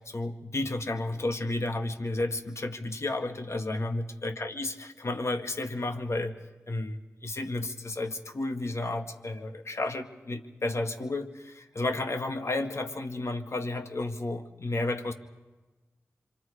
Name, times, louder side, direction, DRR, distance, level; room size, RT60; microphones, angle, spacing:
voice 1, 0.0-6.4 6.7-7.0 7.2-15.1, left 2 dB, 55° left, 6 dB, 1.9 m, -32 dB
27.0 x 25.5 x 5.0 m, 1.2 s
cardioid pair, 45°, 6 cm